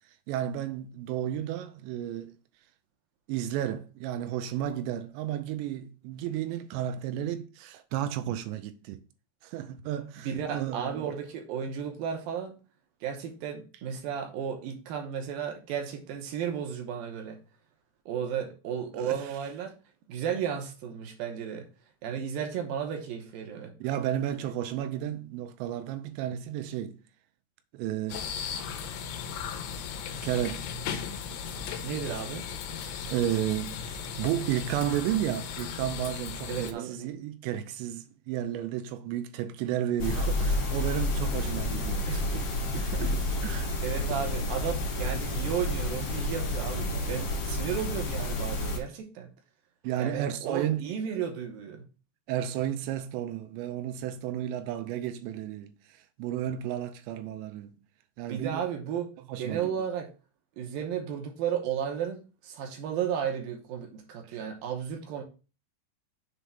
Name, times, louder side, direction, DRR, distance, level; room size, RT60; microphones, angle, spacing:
voice 1, 0.3-2.3 3.3-9.0 9.4-11.1 19.0-19.3 22.2-22.3 23.8-27.0 27.7-28.2 30.2-30.6 32.7-42.1 42.3-42.5 42.9-43.7 49.8-50.8 52.3-55.8 56.2-57.8 58.2-58.6 59.3-59.7 64.3-64.4, right 11 dB, 85° right, 2.9 m, -32 dB
voice 2, 10.2-12.6 13.0-17.4 18.1-19.7 20.1-21.7 22.0-23.7 31.8-32.4 36.5-37.0 42.1-42.2 42.7-43.1 43.8-49.3 50.0-51.9 58.3-59.1 59.4-60.1 60.6-65.2, right 8 dB, 70° right, 2.3 m, -34 dB
sound 1, 28.1-36.7, left 7 dB, 85° left, 3.2 m, -36 dB
sound 2, 40.0-48.8, left 1 dB, 65° left, 1.5 m, -30 dB
7.3 x 3.4 x 5.5 m
omnidirectional pair, 5.1 m